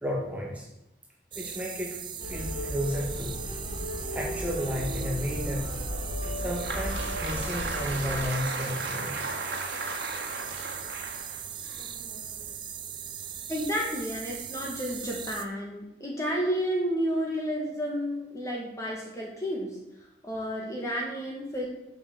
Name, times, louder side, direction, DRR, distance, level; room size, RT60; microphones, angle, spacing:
voice 1, 0.0-0.7 1.4-2.0 2.2-3.4 4.1-5.7 6.3-9.2, equal, 10° right, -2 dB, 1.9 m, -33 dB
sound 1, 1.3-15.4, right 8 dB, 25° right, 0.5 m, -39 dB
sound 2, 2.2-8.2, left 1 dB, 70° left, 2.1 m, -35 dB
Applause, 6.2-12.5, right 3 dB, 75° right, 1.4 m, -36 dB
voice 2, 13.5-19.9 20.2-21.7, equal, 20° left, -2 dB, 1.5 m, -31 dB
7.4 x 6.6 x 6.9 m, 0.92 s
head